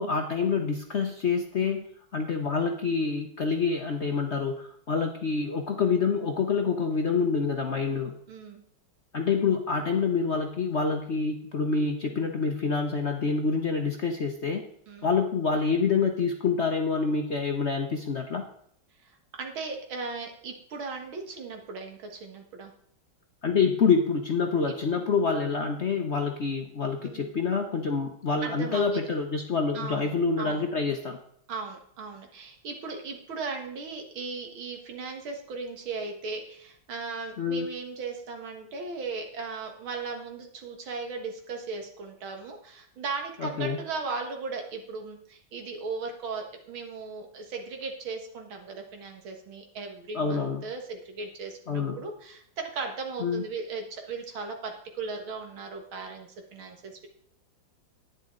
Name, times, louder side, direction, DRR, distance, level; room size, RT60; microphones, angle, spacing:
voice 1, 0.0-8.1 9.1-14.6 15.0-18.5 23.4-31.2 37.4-37.7 43.4-43.8 50.1-50.7 51.7-52.0 53.2-53.4, left 5 dB, 50° left, 4 dB, 0.8 m, -27 dB
voice 2, 8.3-8.6 14.9-15.1 19.0-19.1 19.4-22.7 27.0-27.3 28.4-29.0 29.7-30.1 30.4-30.7 31.5-57.1, right 4 dB, 85° right, 3 dB, 2.4 m, -37 dB
10.5 x 9.9 x 3.8 m, 0.65 s
omnidirectional pair, 2.2 m